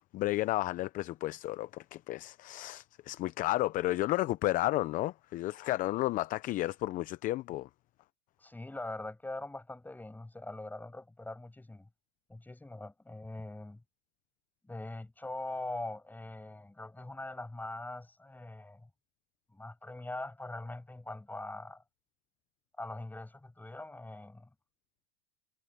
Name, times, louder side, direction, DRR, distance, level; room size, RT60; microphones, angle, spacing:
voice 1, 0.1-7.7, left 17 dB, 25° left, 0.5 m, -32 dB
voice 2, 8.4-11.9 12.3-13.8 14.6-18.9 19.5-21.8 22.8-24.5, left 2 dB, 5° left, 7.5 m, -42 dB
hypercardioid pair, 130°, 34 cm